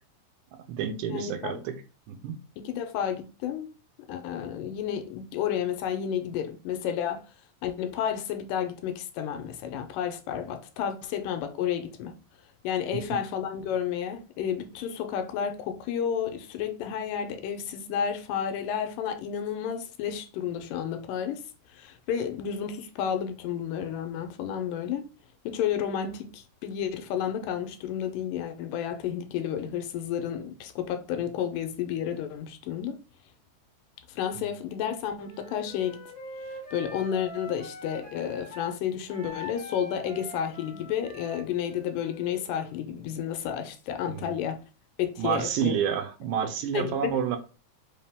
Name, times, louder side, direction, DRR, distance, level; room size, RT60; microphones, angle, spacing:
voice 1, 0.5-1.8 2.1-2.4 12.9-13.2 34.4-34.5 44.1-44.4 45.2-47.4, right 8 dB, 85° right, 2.2 m, -29 dB
voice 2, 1.1-1.6 2.6-3.7 4.1-7.2 7.6-12.1 12.6-21.4 21.7-25.1 25.5-33.0 34.1-36.0 36.7-44.6 45.0-45.7 46.7-47.1, left 8 dB, 85° left, 2.3 m, -31 dB
Wind instrument woodwind instrument, 35.2-38.7 39.1-42.8, left 1 dB, 20° left, 0.9 m, -44 dB
5.2 x 2.8 x 3.4 m
omnidirectional pair, 3.8 m